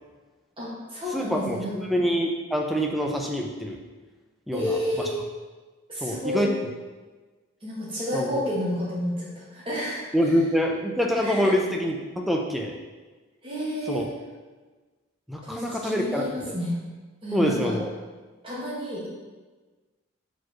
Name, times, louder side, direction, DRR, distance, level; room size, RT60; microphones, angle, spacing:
voice 1, 0.6-1.7 4.5-5.2 5.9-6.4 7.6-10.1 11.2-11.5 13.4-14.1 15.4-16.8 17.2-17.8 18.4-19.1, left 1 dB, 25° right, -6 dB, 1.9 m, -30 dB
voice 2, 1.1-3.8 4.5-5.1 6.0-6.6 8.1-8.4 10.1-12.7 13.9-14.0 15.3-16.5 17.3-17.9, equal, ahead, 1 dB, 0.6 m, -26 dB
4.8 x 4.6 x 6.1 m, 1.3 s
head